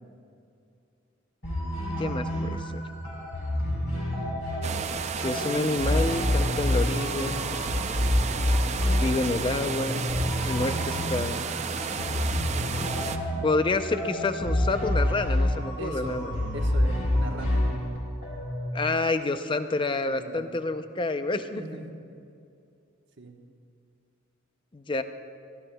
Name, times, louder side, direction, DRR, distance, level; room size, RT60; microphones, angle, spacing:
sound 1, 1.4-18.7, left 1 dB, 60° left, 3.4 m, -28 dB
voice 1, 2.0-2.8 5.2-7.6 9.0-10.1 10.4-11.4 13.4-16.3 18.7-21.6 24.7-25.0, left 3 dB, 25° left, 10 dB, 0.5 m, -28 dB
sound 2, 4.6-13.2, right 6 dB, 35° right, 0.4 m, -32 dB
voice 2, 15.8-17.7 20.0-20.4 21.5-22.2 23.2-23.4, right 2 dB, 60° right, 2 dB, 1.2 m, -39 dB
22.5 x 12.5 x 2.2 m, 2.5 s
head